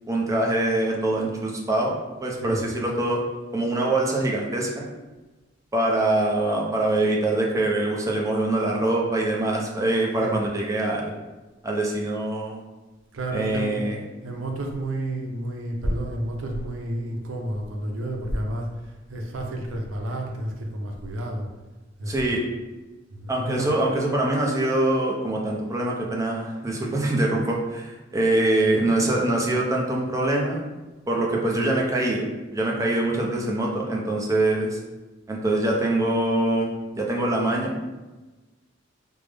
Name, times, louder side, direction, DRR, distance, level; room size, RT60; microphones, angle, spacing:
voice 1, 0.1-3.2 3.5-4.9 5.7-11.1 11.6-12.6 13.3-14.0 22.1-22.4 23.3-30.6 31.1-32.3 32.5-34.8 35.3-36.7 36.9-37.8, right 2 dB, 15° right, -2 dB, 0.5 m, -24 dB
voice 2, 2.4-2.7 10.2-10.5 13.1-13.8 14.2-21.5 22.0-22.4 23.1-23.7, right 1 dB, 85° right, 2 dB, 0.5 m, -30 dB
3.5 x 2.0 x 3.3 m, 1.2 s
head